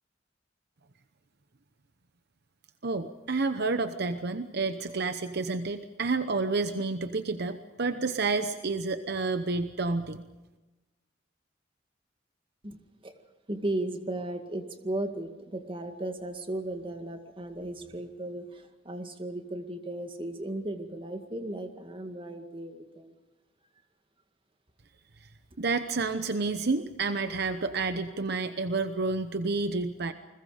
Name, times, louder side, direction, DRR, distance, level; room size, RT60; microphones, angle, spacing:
voice 1, 2.8-10.2 25.6-30.1, right 3 dB, 60° right, 9 dB, 0.9 m, -30 dB
voice 2, 13.5-23.1, right 1 dB, 30° right, 6 dB, 2.1 m, -36 dB
29.0 x 21.5 x 5.1 m, 1.1 s
head